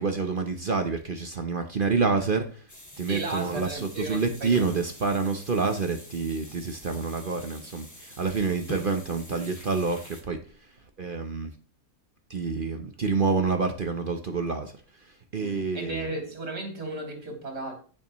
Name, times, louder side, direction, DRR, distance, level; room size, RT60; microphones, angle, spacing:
voice 1, 0.0-2.4 3.0-10.4 11.0-11.5 12.3-14.7 15.3-16.1, right 4 dB, 40° right, 6 dB, 0.8 m, -28 dB
sound 1, 2.7-10.2, equal, 10° left, 2.0 m, -46 dB
voice 2, 3.1-4.7 15.4-17.7, right 2 dB, 85° right, 0 dB, 3.8 m, -35 dB
15.0 x 6.9 x 3.1 m, 0.40 s
omnidirectional pair, 1.7 m